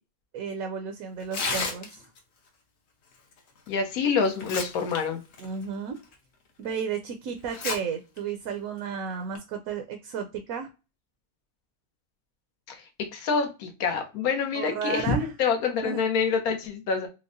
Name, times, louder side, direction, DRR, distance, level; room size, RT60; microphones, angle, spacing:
voice 1, 0.3-2.0 5.4-6.0 6.6-10.7 14.5-15.3 15.8-16.1, right 6 dB, 75° right, 5 dB, 1.0 m, -33 dB
Tearing, 1.2-2.2 3.7-3.8 4.2-5.0 5.3-5.5 6.1-6.2 7.5-7.8 8.2-8.3 9.1-9.4, left 4 dB, 55° left, 1.0 m, -31 dB
voice 2, 3.7-5.2 12.7-17.1, left 5 dB, 75° left, 4 dB, 1.2 m, -27 dB
4.5 x 2.1 x 2.5 m, 0.29 s
omnidirectional pair, 1.6 m